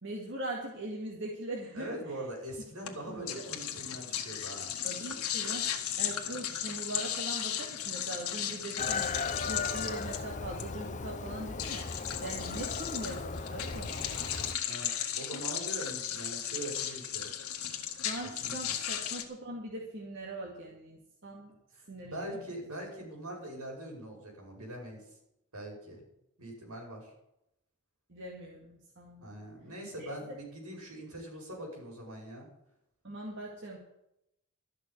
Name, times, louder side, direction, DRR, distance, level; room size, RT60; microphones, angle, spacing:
voice 1, 0.0-2.0 3.1-3.4 4.8-9.1 9.5-11.9 12.2-14.3 18.0-21.5 21.9-22.4 28.1-29.4 30.0-30.1 33.0-33.8, right 1 dB, 55° right, -2 dB, 2.2 m, -41 dB
voice 2, 1.7-4.8 14.7-17.3 18.2-18.8 21.7-25.0 25.5-26.1 26.4-27.1 29.2-32.5, right 1 dB, 80° right, 0 dB, 5.5 m, -42 dB
sound 1, 2.8-19.2, left 9 dB, 85° left, 1.7 m, -36 dB
Chicken rooster, 8.8-14.5, left 4 dB, 35° left, 0.6 m, -37 dB
13.5 x 6.6 x 9.6 m, 0.82 s
head